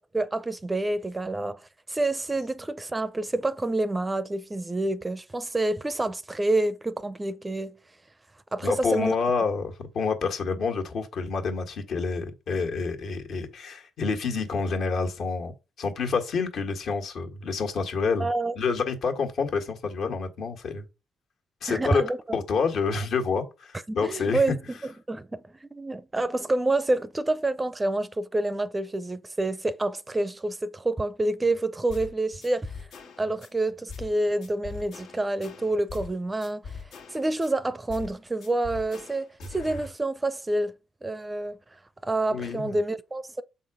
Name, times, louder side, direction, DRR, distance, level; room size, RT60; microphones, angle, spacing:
voice 1, 0.1-1.6 1.9-7.8 8.5-9.2 18.2-18.5 21.7-22.2 23.9-24.6 25.1-32.9 33.2-36.8 37.1-40.7 41.0-41.6 42.0-43.4, right 2 dB, 15° right, 0.5 m, -28 dB
voice 2, 8.6-15.5 15.8-18.3 18.5-20.9 21.6-22.0 22.3-24.6 42.3-42.8, left 4 dB, 65° left, 1.6 m, -28 dB
sound 1, 31.9-32.1 32.4-33.5 33.9-34.1 34.4-36.1 36.4-37.5 37.9-38.2 38.4-39.9, left 4 dB, 80° left, 1.5 m, -41 dB
7.1 x 4.0 x 4.8 m
cardioid pair, 90°, 0 cm